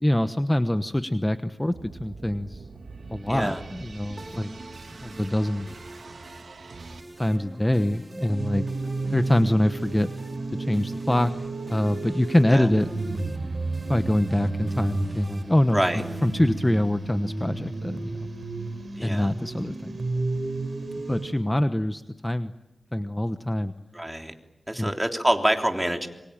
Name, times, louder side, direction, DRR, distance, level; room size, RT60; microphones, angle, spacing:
voice 1, 0.0-1.7 2.0-2.6 3.1-4.5 5.0-5.7 7.2-8.7 9.1-10.1 10.7-11.3 11.7-12.9 13.9-15.8 16.2-18.3 19.0-20.0 21.1-22.5 22.9-23.7 24.8-24.9, left 1 dB, 15° left, 10 dB, 1.1 m, -24 dB
sound 1, 1.7-7.0, right 4 dB, 85° right, 2.6 m, -43 dB
voice 2, 3.3-3.6 12.5-12.7 15.7-16.0 18.9-19.3 23.9-24.3 24.7-26.1, right 1 dB, 10° right, 4 dB, 3.4 m, -26 dB
sound 2, 4.2-17.2, right 1 dB, 30° right, 4.2 m, -44 dB
sound 3, 8.4-21.3, right 3 dB, 55° right, 4.1 m, -32 dB
27.0 x 24.0 x 8.9 m, 0.96 s
cardioid pair, 55°, 0 cm